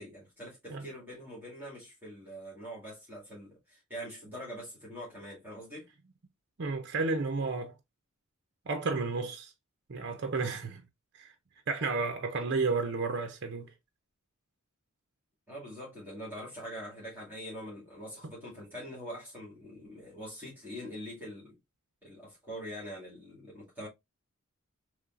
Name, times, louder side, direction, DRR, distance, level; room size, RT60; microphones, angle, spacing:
voice 1, 0.0-5.9 15.5-21.6 22.0-23.9, equal, 10° right, 2.2 m, -44 dB
voice 2, 6.6-7.7 8.7-9.5 9.9-10.8 11.2-11.3 11.7-13.7 18.2-18.3, right 4 dB, 50° right, 0.6 m, -32 dB
5.3 x 3.1 x 2.5 m
head